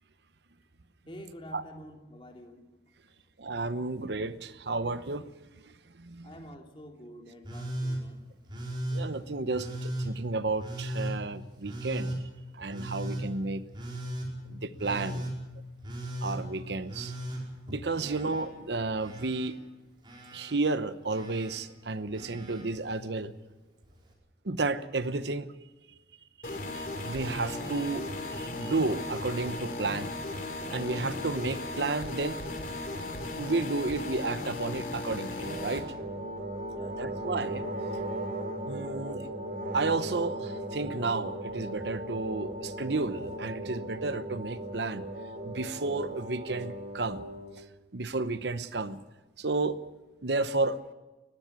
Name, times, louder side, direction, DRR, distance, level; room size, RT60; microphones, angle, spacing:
voice 1, 1.1-2.6 6.2-8.3 18.0-18.2 36.6-37.1, equal, 30° left, 3 dB, 2.7 m, -48 dB
voice 2, 3.4-5.3 5.5-5.6 6.0-6.4 8.9-12.3 12.6-13.6 14.5-15.3 16.2-17.1 17.7-19.6 20.3-23.3 24.4-25.5 26.4-30.1 30.7-32.4 33.4-35.9 37.0-37.7 38.7-39.3 39.7-45.1 45.4-47.2 47.9-49.0 49.4-49.8 50.2-50.8, right 3 dB, 75° right, 13 dB, 0.9 m, -32 dB
Telephone, 7.4-8.0 8.5-9.0 9.5-10.1 10.6-11.1 11.6-12.2 12.7-13.2 13.7-14.3 14.8-15.3 15.8-16.4 16.9-18.4 18.7-19.5 20.0-20.5 21.1-21.6 22.1-22.6 23.8-23.9, right 1 dB, 25° right, 4.9 m, -36 dB
sound 1, 26.4-35.8, left 2 dB, 45° left, 3.2 m, -36 dB
sound 2, 35.3-47.6, right 1 dB, 45° right, 3.5 m, -37 dB
20.0 x 15.0 x 9.7 m, 1.2 s
head